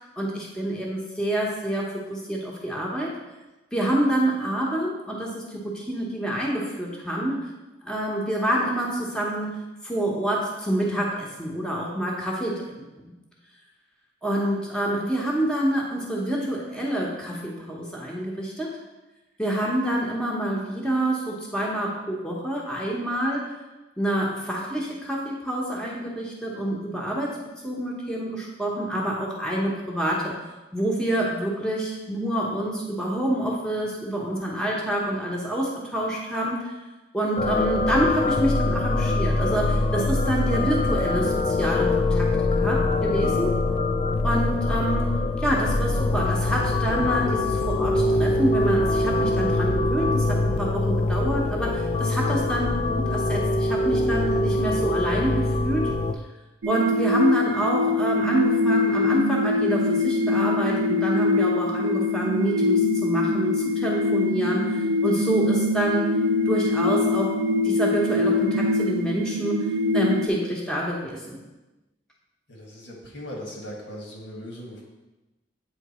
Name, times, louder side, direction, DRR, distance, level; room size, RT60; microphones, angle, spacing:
voice 1, 0.2-3.1 3.7-7.5 7.8-9.6 9.8-12.6 13.0-13.1 14.2-18.7 19.4-23.4 24.0-27.4 27.6-30.3 30.7-36.7 37.1-42.3 42.5-43.5 44.2-45.1 45.4-55.9 56.7-66.1 66.4-67.3 67.6-69.7 69.9-71.4, right 1 dB, 5° left, -4 dB, 0.9 m, -27 dB
sound 1, 37.4-56.1, left 2 dB, 30° left, 0.3 m, -23 dB
sound 2, 56.6-70.3, left 2 dB, 90° right, 0.5 m, -23 dB
voice 2, 72.5-74.8, equal, 70° left, -2 dB, 1.5 m, -38 dB
8.4 x 3.2 x 4.2 m, 1.1 s
head